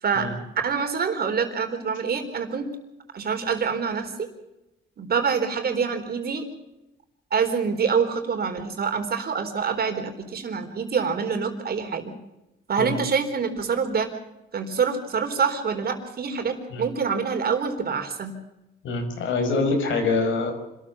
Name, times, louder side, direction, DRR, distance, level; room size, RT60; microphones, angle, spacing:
voice 1, 0.6-2.7 3.1-4.3 5.0-6.4 7.3-12.1 12.7-14.1 14.5-18.3, right 6 dB, 50° right, 6 dB, 4.1 m, -26 dB
voice 2, 18.8-20.5, left 3 dB, 80° left, 6 dB, 5.4 m, -25 dB
26.0 x 13.5 x 7.2 m, 0.94 s
cardioid pair, 90°, 20 cm